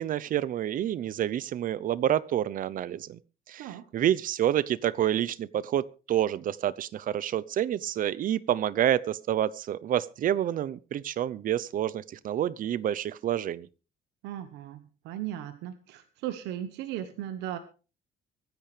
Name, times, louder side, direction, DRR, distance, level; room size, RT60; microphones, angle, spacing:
voice 1, 0.0-3.2 3.5-3.7 3.9-13.7, right 11 dB, 55° right, 19 dB, 0.8 m, -28 dB
voice 2, 3.6-3.9 14.2-17.6, right 12 dB, 90° right, 10 dB, 1.2 m, -37 dB
24.5 x 10.5 x 3.4 m, 0.35 s
cardioid pair, 110°, 17 cm